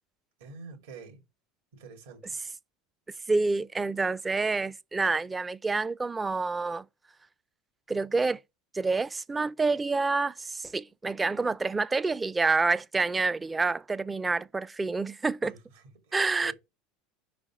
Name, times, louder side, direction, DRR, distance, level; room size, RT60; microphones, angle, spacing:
voice 1, 0.4-1.2 1.7-2.4 15.4-15.6 16.1-16.5, right 5 dB, 85° right, 2.8 m, -46 dB
voice 2, 3.3-6.9 7.9-8.4 8.7-15.5 16.1-16.5, right 3 dB, 15° right, 0.4 m, -28 dB
5.1 x 5.0 x 6.1 m
supercardioid pair, 110°, 0 cm